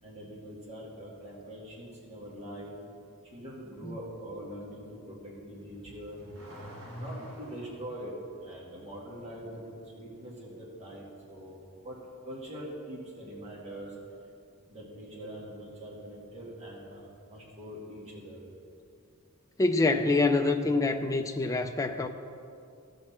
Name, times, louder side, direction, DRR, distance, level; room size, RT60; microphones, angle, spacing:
voice 1, 0.0-2.7 3.3-6.2 6.9-8.1 8.4-12.0 12.2-13.9 14.7-17.0 17.3-18.4, right 1 dB, 30° right, 2.3 m, -43 dB
Car / Accelerating revving vroom, 5.6-7.9, equal, 70° right, 1.9 m, -44 dB
voice 2, 19.6-22.1, left 3 dB, 15° left, 0.4 m, -26 dB
16.0 x 6.4 x 4.3 m
head